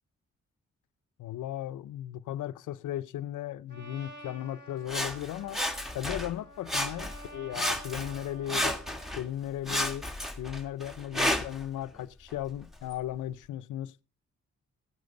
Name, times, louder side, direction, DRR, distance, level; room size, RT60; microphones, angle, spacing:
voice 1, 1.2-5.6 5.9-8.8 9.2-10.1 10.4-14.0, left 12 dB, 90° left, 0.5 m, -36 dB
Trumpet, 3.7-9.2, right 1 dB, 35° right, 6.1 m, -50 dB
Sawing, 4.9-6.4 6.7-7.3 7.5-9.2 9.7-11.7 12.3-12.4, left 1 dB, ahead, 1.6 m, -32 dB
16.5 x 9.5 x 3.8 m
cardioid pair, 60°, 30 cm